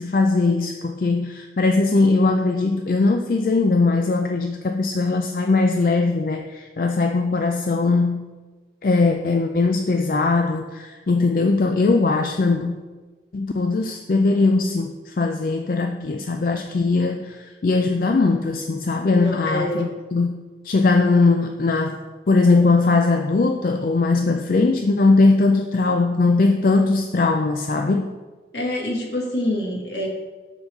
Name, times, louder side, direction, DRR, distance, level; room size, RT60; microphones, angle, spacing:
voice 1, 0.0-8.2 8.8-12.8 13.3-28.1, left 3 dB, 50° left, 5 dB, 0.4 m, -20 dB
voice 2, 19.1-19.8 28.5-30.1, left 1 dB, 75° left, 0 dB, 1.6 m, -26 dB
7.1 x 4.1 x 6.5 m, 1.3 s
head